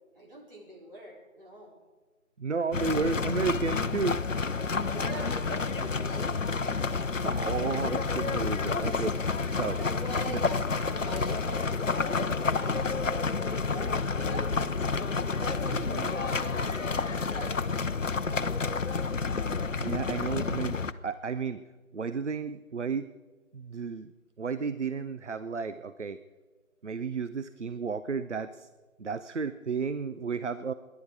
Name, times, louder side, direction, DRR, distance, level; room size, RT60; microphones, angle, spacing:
voice 1, 0.1-1.7 4.8-6.3 9.7-11.7 12.0-13.0 13.3-14.5 15.3-17.6, right 1 dB, 40° right, -4 dB, 4.3 m, -43 dB
voice 2, 2.4-4.2 7.1-9.8 10.3-10.4 15.8-16.1 19.8-21.6 21.9-23.1 23.5-24.1 24.4-26.2 26.8-28.7 29.0-30.7, right 5 dB, 55° right, 13 dB, 0.5 m, -33 dB
sound 1, 2.7-20.9, left 4 dB, 65° left, 0.7 m, -29 dB
21.5 x 11.0 x 4.7 m, 1.3 s
figure-of-eight pair, 165°, 42 cm